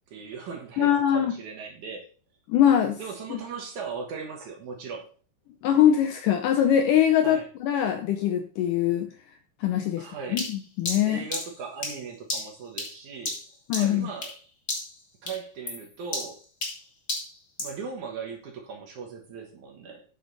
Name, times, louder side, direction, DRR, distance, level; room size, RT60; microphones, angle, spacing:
voice 1, 0.1-2.1 3.0-5.1 7.2-7.4 10.0-10.4 11.1-13.4 13.8-14.3 15.2-16.4 17.6-20.0, right 5 dB, 60° right, 2.4 m, -38 dB
voice 2, 0.8-1.3 2.5-3.0 3.3-3.4 5.6-9.1 9.6-10.1 10.3-10.4 10.8-11.2 13.7-14.1, left 10 dB, 75° left, 2.0 m, -22 dB
sound 1, 10.4-14.4 14.7-15.0 15.3-17.8, left 2 dB, 25° left, 2.0 m, -34 dB
9.5 x 7.2 x 4.0 m
omnidirectional pair, 4.5 m